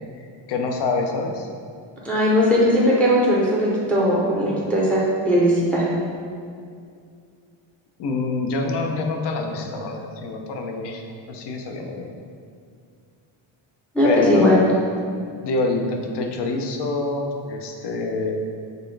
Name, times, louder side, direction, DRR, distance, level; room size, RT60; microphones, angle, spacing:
voice 1, 0.5-1.5 8.0-11.0 11.3-12.1 14.0-14.5 15.4-18.4, left 3 dB, 60° left, 3 dB, 0.6 m, -26 dB
voice 2, 2.0-5.8 13.9-14.6, equal, 5° left, -5 dB, 0.5 m, -18 dB
4.2 x 3.2 x 3.2 m, 2.3 s
cardioid pair, 145°, 48 cm